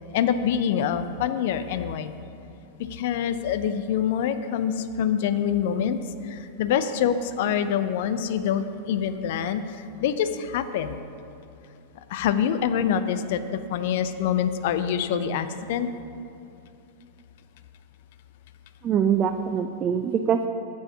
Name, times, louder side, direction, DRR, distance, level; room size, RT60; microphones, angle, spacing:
voice 1, 0.1-2.1 2.8-6.0 6.2-11.0 12.1-15.9, left 8 dB, 50° left, 11 dB, 0.5 m, -25 dB
voice 2, 18.8-20.5, right 8 dB, 30° right, 7 dB, 0.4 m, -23 dB
7.4 x 7.0 x 6.0 m, 2.6 s
figure-of-eight pair, 90°, 0 cm